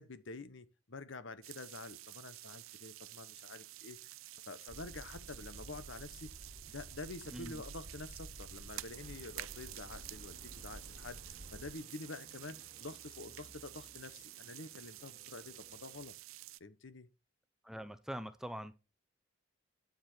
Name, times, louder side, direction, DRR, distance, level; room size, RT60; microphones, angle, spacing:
voice 1, 0.0-4.1 4.5-6.3 6.6-16.1 16.6-17.1, left 3 dB, 65° left, 1.1 m, -48 dB
sound 1, 1.4-16.6, right 16 dB, 90° right, 0.5 m, -51 dB
sound 2, 4.7-11.7, right 1 dB, 70° right, 1.3 m, -53 dB
voice 2, 7.3-7.6 17.6-18.8, equal, ahead, 0.6 m, -43 dB
sound 3, 8.9-16.1, equal, 30° left, 3.1 m, -62 dB
9.3 x 7.6 x 4.5 m
head